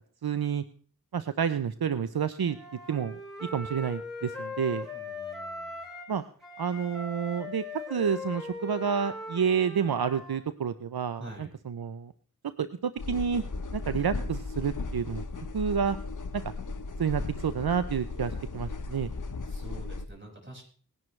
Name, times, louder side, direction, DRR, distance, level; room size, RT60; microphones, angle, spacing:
voice 1, 0.2-0.6 1.1-2.6 2.9-4.9 6.1-6.2 6.6-7.6 7.9-12.1 12.6-13.4 13.7-15.2 15.5-16.0 16.3-16.4 17.0-19.1, right 7 dB, 80° right, 12 dB, 0.6 m, -29 dB
Wind instrument woodwind instrument, 2.4-6.1 6.4-10.4, left 2 dB, ahead, 6.6 m, -40 dB
voice 2, 4.9-5.8 11.2-11.5 19.4-20.6, right 1 dB, 30° right, -1 dB, 5.7 m, -46 dB
sound 1, 13.0-20.1, left 3 dB, 55° left, 1.0 m, -36 dB
20.0 x 11.0 x 3.2 m, 0.43 s
wide cardioid pair, 50°, 37 cm